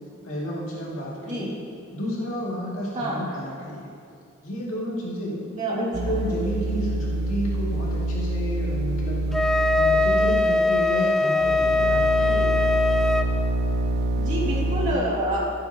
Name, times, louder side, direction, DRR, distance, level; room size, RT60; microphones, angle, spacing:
voice 1, 0.2-1.5 1.9-3.9 4.4-5.4 5.7-9.4 9.7-12.7, equal, 75° left, -5 dB, 2.2 m, -31 dB
voice 2, 1.2-1.5 2.9-3.2 5.5-6.2 12.1-12.6 14.2-15.5, right 1 dB, 35° right, -6 dB, 2.3 m, -28 dB
sound 1, 5.9-10.8 11.4-15.0, right 1 dB, 50° right, 0.6 m, -26 dB
Wind instrument woodwind instrument, 9.3-13.3, left 3 dB, ahead, 0.3 m, -21 dB
15.0 x 8.9 x 2.9 m, 2.3 s
head